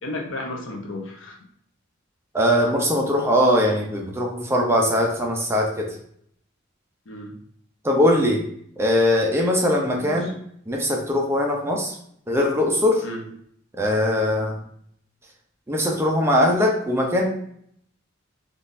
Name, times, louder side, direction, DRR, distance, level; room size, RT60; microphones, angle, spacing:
voice 1, 0.0-1.4 7.1-7.3 10.0-10.3 13.0-13.2, left 2 dB, 70° left, 1 dB, 0.7 m, -33 dB
voice 2, 2.3-6.0 7.8-8.4 8.8-10.3 10.7-11.9 12.3-13.0 13.8-14.6 15.7-17.3, left 1 dB, 15° right, 0 dB, 0.5 m, -21 dB
3.8 x 2.4 x 2.6 m, 0.67 s
head